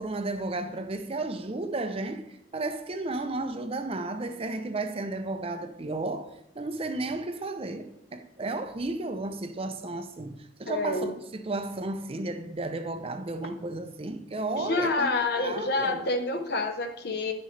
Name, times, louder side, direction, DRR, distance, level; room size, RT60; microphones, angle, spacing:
voice 1, 0.0-15.1 15.4-16.1, right 2 dB, 35° right, 0.6 m, -33 dB
voice 2, 10.7-11.1 14.6-17.3, left 3 dB, 60° left, 1.0 m, -28 dB
10.0 x 6.4 x 3.3 m
head